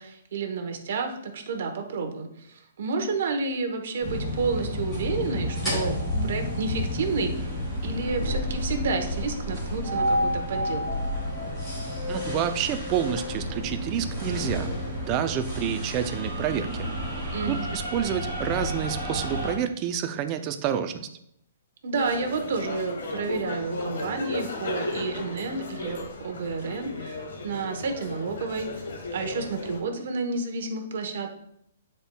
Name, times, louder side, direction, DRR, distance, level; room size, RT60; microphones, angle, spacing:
voice 1, 0.0-11.1 17.3-17.7 21.8-28.8 29.1-31.3, right 4 dB, 55° right, 4 dB, 1.0 m, -30 dB
sound 1, 4.0-19.5, equal, 5° left, 2.5 m, -30 dB
voice 2, 12.1-14.7 15.1-16.9 17.4-21.1, right 9 dB, 25° right, 9 dB, 0.4 m, -28 dB
sound 2, 21.9-29.8, left 2 dB, 65° left, 1.4 m, -35 dB
10.0 x 4.4 x 2.3 m, 0.75 s
hypercardioid pair, 170°, 0 cm